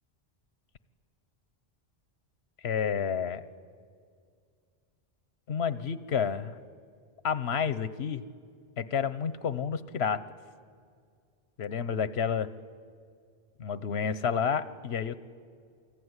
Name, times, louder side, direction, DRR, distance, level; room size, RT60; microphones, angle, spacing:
voice 1, 2.6-3.4 5.5-6.6 7.2-8.2 8.8-10.2 11.6-12.5 13.6-15.1, left 7 dB, 90° left, 14 dB, 1.2 m, -30 dB
28.0 x 20.0 x 9.7 m, 2.1 s
omnidirectional pair, 1.1 m